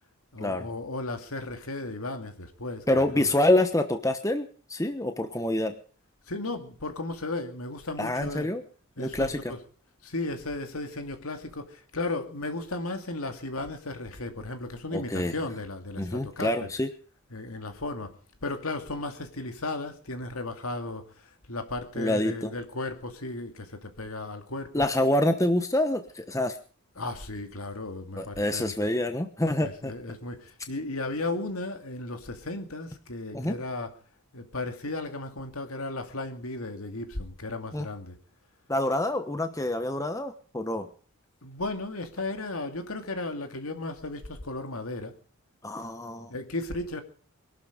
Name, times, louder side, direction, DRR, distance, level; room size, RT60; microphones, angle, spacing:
voice 1, 0.3-3.3 6.3-8.5 9.0-9.6 10.0-16.7 17.3-18.1 18.4-24.8 27.0-28.6 29.6-33.9 34.3-38.2 41.4-45.1 46.3-47.0, left 2 dB, 70° left, 2.5 m, -35 dB
voice 2, 2.9-5.7 8.0-8.6 9.0-9.4 14.9-15.3 16.0-16.9 22.0-22.5 24.7-26.6 28.2-29.9 33.3-33.5 37.7-37.9 38.7-40.9 45.6-46.3, left 1 dB, 15° left, 1.0 m, -26 dB
22.0 x 12.0 x 5.1 m
head